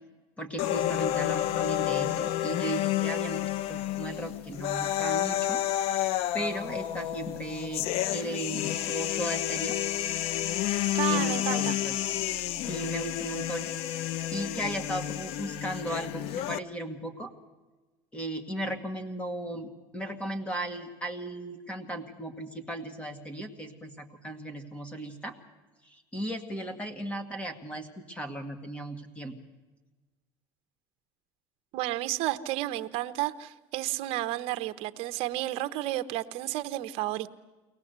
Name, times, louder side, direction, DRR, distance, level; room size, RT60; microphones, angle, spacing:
voice 1, 0.4-5.6 6.3-7.9 8.1-9.8 11.1-12.0 12.7-13.7 14.3-17.3 18.1-25.4 25.9-29.4, right 1 dB, 10° left, 8 dB, 1.9 m, -36 dB
sound 1, 0.6-16.6, left 13 dB, 60° left, 0.6 m, -30 dB
voice 2, 10.9-11.8 31.7-37.3, right 16 dB, 60° right, 12 dB, 0.9 m, -31 dB
23.0 x 18.5 x 8.1 m, 1.2 s
cardioid pair, 140°, 11 cm